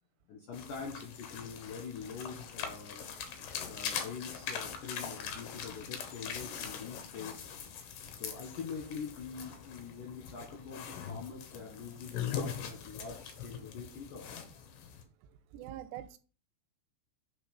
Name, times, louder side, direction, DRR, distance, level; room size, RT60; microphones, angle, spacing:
voice 1, 0.3-3.1 3.6-7.5 7.8-14.4, left 5 dB, 75° left, 1.9 m, -44 dB
sound 1, 0.5-15.0, left 7 dB, 90° left, 2.0 m, -42 dB
voice 2, 15.5-16.2, right 12 dB, 90° right, 3.2 m, -43 dB
8.8 x 3.8 x 5.2 m
omnidirectional pair, 5.8 m